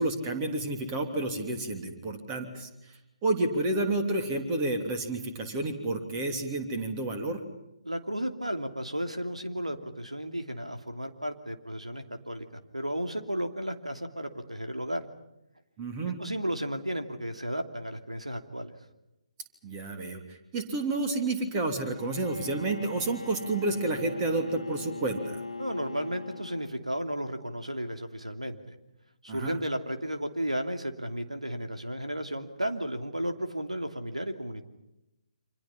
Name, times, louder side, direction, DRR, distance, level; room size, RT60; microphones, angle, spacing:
voice 1, 0.0-2.7 3.2-7.4 15.8-16.2 19.6-20.2 20.5-25.4 29.3-29.6, right 2 dB, 20° right, 5 dB, 3.2 m, -30 dB
voice 2, 7.8-15.0 16.2-18.7 25.6-28.8 29.2-34.6, equal, 85° right, 6 dB, 2.8 m, -34 dB
Bowed string instrument, 21.9-27.1, left 3 dB, 70° left, 1.6 m, -41 dB
30.0 x 26.0 x 5.7 m, 0.89 s
figure-of-eight pair, 140°, 3 cm